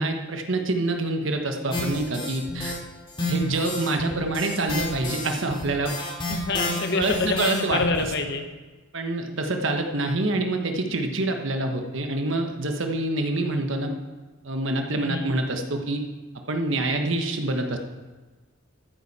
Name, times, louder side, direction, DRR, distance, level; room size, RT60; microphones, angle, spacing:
voice 1, 0.0-2.8 3.3-5.9 6.9-7.8 8.9-13.9 14.4-16.0 16.5-17.8, right 2 dB, 65° right, 4 dB, 1.2 m, -26 dB
sound 1, 1.7-2.7 3.1-8.0, left 1 dB, 25° left, 2.6 m, -30 dB
voice 2, 6.3-8.4 14.9-15.3, left 4 dB, 55° left, 6 dB, 1.1 m, -27 dB
14.0 x 9.0 x 4.2 m, 1.3 s
head